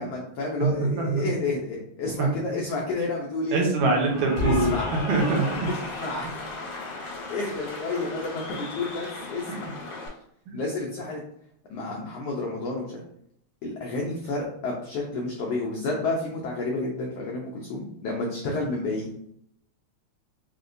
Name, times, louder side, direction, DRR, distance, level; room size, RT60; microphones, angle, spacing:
voice 1, 0.0-3.6 4.4-4.9 5.6-6.4 7.3-9.7 10.5-11.2 11.7-13.0 13.6-19.1, left 3 dB, 85° left, -2 dB, 1.4 m, -30 dB
voice 2, 3.5-4.7 5.0-5.7 10.5-10.6, right 3 dB, 80° right, 0 dB, 2.0 m, -23 dB
Cheering / Applause, 3.8-10.1, left 3 dB, 65° left, 1.9 m, -34 dB
5.0 x 2.2 x 2.5 m, 0.71 s
omnidirectional pair, 3.4 m